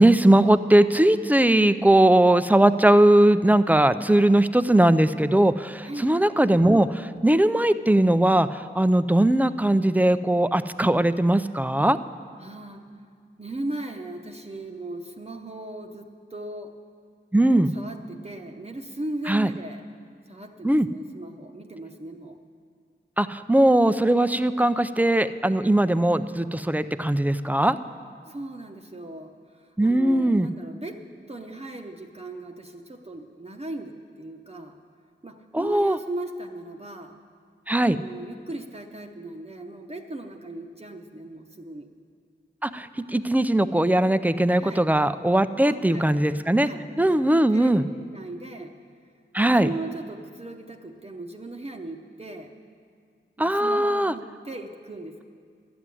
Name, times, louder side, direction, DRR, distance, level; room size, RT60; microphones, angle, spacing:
voice 1, 0.0-12.0 17.3-17.7 19.3-19.5 20.6-20.9 23.2-27.8 29.8-30.5 35.5-36.0 37.7-38.0 42.6-46.7 47.0-47.8 49.3-49.7 53.4-54.1, right 1 dB, 10° right, 13 dB, 0.4 m, -20 dB
voice 2, 5.8-6.1 12.4-12.9 13.4-16.8 17.5-19.8 20.3-22.4 28.3-34.8 35.2-37.2 37.9-41.9 44.6-44.9 45.6-46.2 46.6-47.8 48.1-48.7 49.4-52.5 53.4-55.2, right 2 dB, 30° right, 3 dB, 0.8 m, -38 dB
12.0 x 7.7 x 9.6 m, 2.1 s
wide cardioid pair, 70°, 20 cm